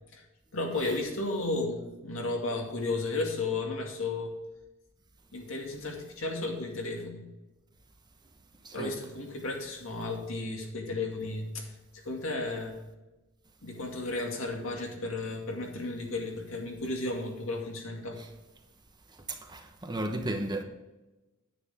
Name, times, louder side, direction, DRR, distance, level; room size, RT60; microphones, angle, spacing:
voice 1, 0.5-4.3 5.3-7.3 8.7-12.8 13.6-18.2, left 2 dB, 70° left, 1 dB, 2.3 m, -34 dB
voice 2, 19.5-20.6, right 1 dB, 20° right, 4 dB, 1.0 m, -33 dB
9.9 x 9.3 x 3.5 m, 1.1 s
head